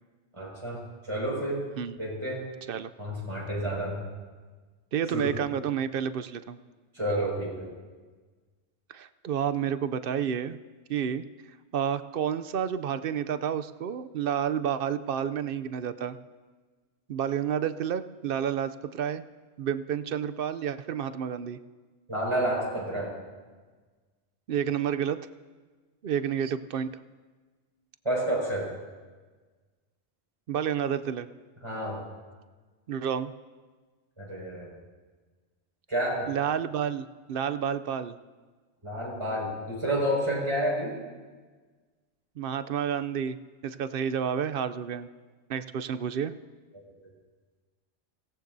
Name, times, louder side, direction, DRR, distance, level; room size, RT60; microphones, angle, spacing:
voice 1, 0.3-0.8 1.1-1.6 2.0-2.4 3.0-4.0 5.1-5.3 6.9-7.7 22.1-23.1 28.0-28.7 31.6-32.0 34.2-34.7 35.9-36.3 38.8-40.9 46.7-46.8, right 1 dB, 30° right, -4 dB, 5.7 m, -29 dB
voice 2, 4.9-6.6 8.9-10.6 10.9-11.2 11.7-16.2 17.1-19.2 19.6-21.6 24.5-25.2 26.0-26.9 30.5-31.3 32.9-33.3 36.3-38.1 42.4-43.4 43.6-45.1 45.5-46.3, right 8 dB, 65° right, 13 dB, 0.7 m, -30 dB
25.5 x 17.5 x 2.7 m, 1.4 s
omnidirectional pair, 1.1 m